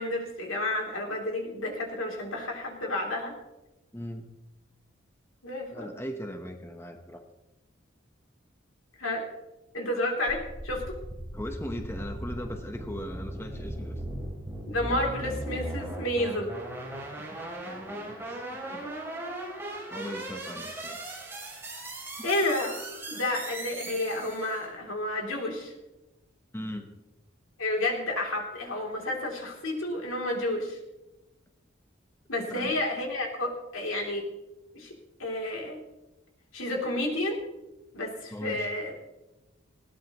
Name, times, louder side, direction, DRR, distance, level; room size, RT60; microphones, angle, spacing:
voice 1, 0.0-3.3 5.4-5.9 9.0-9.2 9.7-11.0 14.7-16.5 22.2-22.8 23.1-25.7 27.6-30.8 32.3-34.3 34.7-34.9 35.2-35.8 36.5-37.4 37.9-38.9, left 1 dB, 90° left, 0 dB, 3.1 m, -30 dB
voice 2, 3.9-4.3 5.7-7.2 11.3-14.0 17.6-18.9 19.9-21.0 22.2-22.3 26.5-26.9 32.5-32.7 38.3-38.7, equal, 10° left, 5 dB, 1.0 m, -39 dB
sound 1, 10.3-24.7, right 1 dB, 10° right, 3.2 m, -38 dB
19.5 x 17.0 x 3.1 m, 1.0 s
head